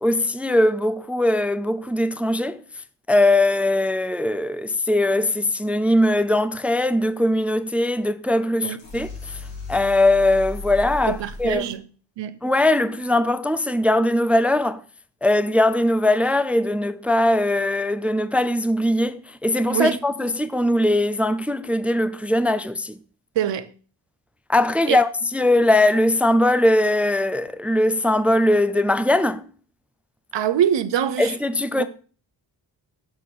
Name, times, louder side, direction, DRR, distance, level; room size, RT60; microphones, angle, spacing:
voice 1, 0.0-2.6 3.1-9.1 9.7-11.6 12.4-14.8 15.2-23.0 24.5-29.4 31.2-31.8, left 1 dB, 5° right, 0.4 m, -20 dB
sound 1, 8.8-11.7, equal, 90° left, 4.1 m, -35 dB
voice 2, 11.1-11.8 12.2-12.4 19.7-20.0 23.3-23.7 24.9-25.0 30.3-31.4 31.8-31.9, right 10 dB, 75° right, 0.9 m, -23 dB
7.3 x 4.2 x 6.5 m
cardioid pair, 75°, 43 cm